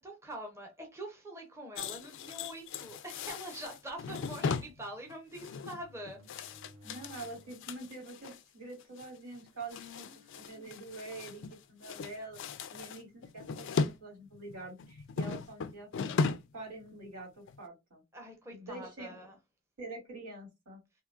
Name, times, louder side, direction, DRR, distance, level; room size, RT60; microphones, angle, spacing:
voice 1, 0.0-6.3 9.7-10.7 18.1-19.4, right 1 dB, 10° right, 0.7 m, -45 dB
sound 1, 1.8-8.4 8.8-9.1 9.3-11.6 11.8-14.0 14.3-16.6 16.9-17.1 17.5-17.6, left 4 dB, 55° left, 0.4 m, -37 dB
sound 2, 5.4-7.6 8.1-8.2 9.0-9.1 9.5-9.9 10.5-10.6 11.9-12.7 13.7-14.0, left 1 dB, 65° right, 0.9 m, -60 dB
voice 2, 6.8-10.1 10.3-11.4 11.7-12.4 12.7-16.3 16.5-18.0 18.5-19.1 19.8-20.8, right 2 dB, 85° right, 2.4 m, -46 dB
3.7 x 2.7 x 2.3 m
head